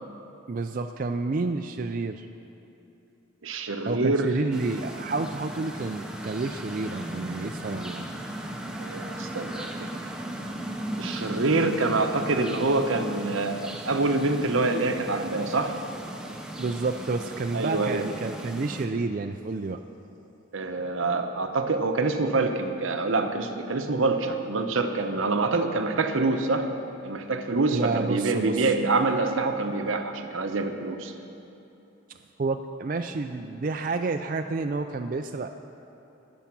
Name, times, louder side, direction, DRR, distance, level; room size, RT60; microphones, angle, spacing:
voice 1, 0.5-2.3 3.8-8.1 16.6-19.8 27.7-28.7 32.4-35.5, right 3 dB, 40° right, 6 dB, 0.4 m, -30 dB
voice 2, 3.4-4.3 8.8-9.9 11.0-15.8 17.5-18.1 20.5-26.7 27.0-31.1, right 3 dB, 80° right, 7 dB, 0.9 m, -26 dB
sound 1, 4.5-18.9, right 1 dB, 5° right, 0.7 m, -37 dB
20.0 x 7.2 x 6.0 m, 2.9 s
head